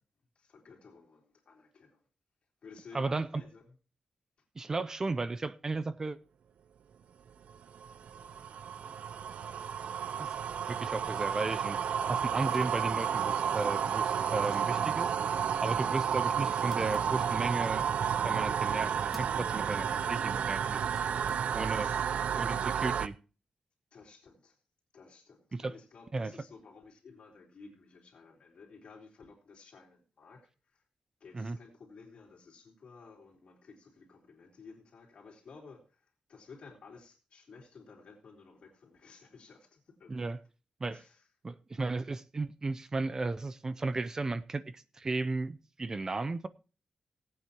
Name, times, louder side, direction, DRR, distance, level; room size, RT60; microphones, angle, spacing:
voice 1, 0.4-2.0 2.6-3.7 8.1-9.6 21.0-21.1 21.6-22.1 23.9-24.6 24.9-30.8 31.2-40.2 40.9-41.2, left 4 dB, 60° left, 3.6 m, -55 dB
voice 2, 2.9-3.4 4.6-6.2 10.2-10.3 10.7-11.8 12.1-17.9 18.2-20.9 21.5-21.9 22.3-23.1 25.5-25.8 26.1-26.3 31.3-31.6 40.1-40.4 40.8-41.0 41.4-46.5, right 3 dB, 25° right, 0.5 m, -35 dB
sound 1, 7.5-23.1, right 8 dB, 90° right, 0.5 m, -31 dB
sound 2, 12.2-21.9 22.2-23.1, left 1 dB, ahead, 1.3 m, -54 dB
18.5 x 8.7 x 2.9 m
wide cardioid pair, 160°, 2 cm